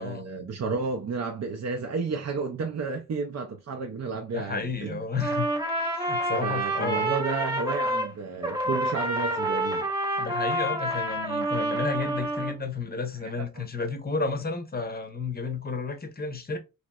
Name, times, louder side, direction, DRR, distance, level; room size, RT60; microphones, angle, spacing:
voice 1, 0.0-5.0 6.4-9.9 13.4-13.6, right 4 dB, 50° right, 0.5 m, -32 dB
voice 2, 4.3-5.5 6.0-7.1 10.2-16.6, left 4 dB, 30° left, 0.7 m, -32 dB
Trumpet, 5.2-8.1 8.4-12.5, right 1 dB, 15° right, 1.1 m, -28 dB
3.0 x 3.0 x 2.2 m
wide cardioid pair, 90°, 34 cm